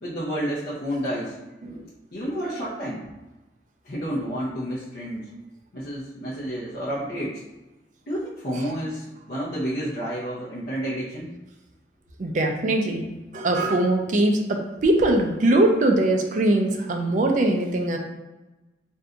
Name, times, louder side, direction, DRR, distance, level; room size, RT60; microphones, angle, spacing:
voice 1, 0.0-1.4 2.1-3.0 3.8-5.3 5.7-7.4 8.1-11.3, equal, 55° left, -9 dB, 0.6 m, -30 dB
voice 2, 12.2-18.0, right 1 dB, 45° right, 3 dB, 0.4 m, -22 dB
2.6 x 2.2 x 3.7 m, 1.1 s
head